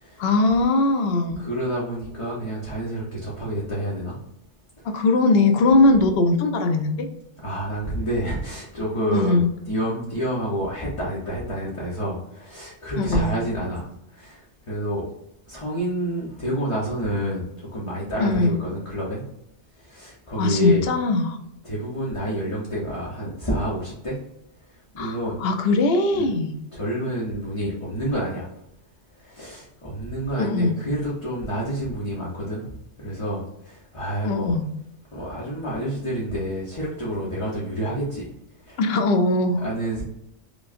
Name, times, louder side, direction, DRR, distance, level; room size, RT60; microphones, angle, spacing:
voice 1, 0.2-1.4 4.8-7.1 9.1-9.5 13.0-13.3 18.2-18.6 20.4-21.4 25.0-26.5 30.4-30.8 34.2-34.7 38.8-39.6, left 2 dB, 60° left, 5 dB, 0.8 m, -20 dB
voice 2, 1.4-4.2 7.4-13.9 14.1-14.4 14.7-15.0 15.5-19.2 19.8-20.8 21.6-24.2 24.9-25.3 26.1-26.3 26.7-28.5 29.2-32.7 33.0-34.5 35.1-38.2 38.7-38.8 39.6-40.0, equal, 30° left, -7 dB, 0.9 m, -28 dB
5.0 x 2.3 x 2.5 m, 0.79 s
omnidirectional pair, 1.2 m